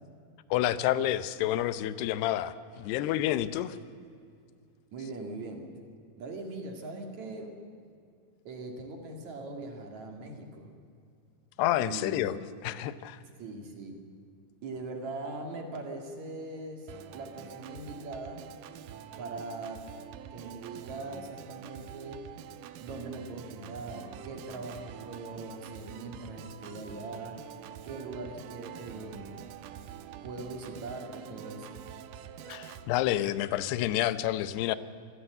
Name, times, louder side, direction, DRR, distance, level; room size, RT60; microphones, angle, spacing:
voice 1, 0.5-3.8 11.6-13.2 32.4-34.8, left 13 dB, 85° left, 15 dB, 2.8 m, -29 dB
voice 2, 4.9-5.7 6.2-7.5 8.4-10.7 11.8-12.2 13.4-14.0 14.6-18.5 19.2-19.9 20.3-22.2 22.8-27.4 27.8-29.5 30.2-31.8, right 2 dB, 50° right, 3 dB, 3.0 m, -41 dB
Organ, 16.9-32.9, right 9 dB, 75° right, 2.1 m, -46 dB
25.0 x 16.0 x 7.9 m, 2.4 s
omnidirectional pair, 4.7 m